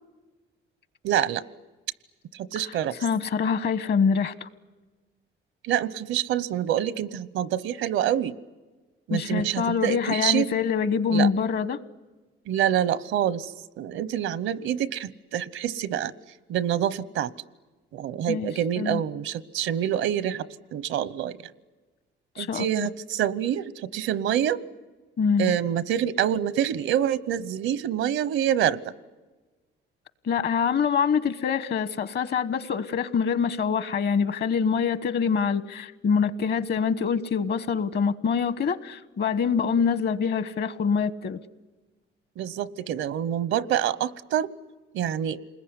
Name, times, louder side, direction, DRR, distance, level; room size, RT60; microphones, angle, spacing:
voice 1, 1.0-1.4 2.3-3.0 5.6-8.3 9.1-10.5 11.1-11.3 12.5-16.1 16.5-17.3 17.9-20.5 20.7-21.4 22.4-24.6 25.4-28.9 42.4-44.5 44.9-45.4, right 10 dB, 85° right, 19 dB, 1.0 m, -26 dB
voice 2, 3.0-4.5 9.1-11.8 18.3-18.5 18.8-19.0 22.4-22.7 25.2-25.5 30.2-41.4, left 6 dB, 55° left, 15 dB, 1.2 m, -25 dB
28.0 x 21.0 x 9.8 m, 1.2 s
cardioid pair, 90°, 20 cm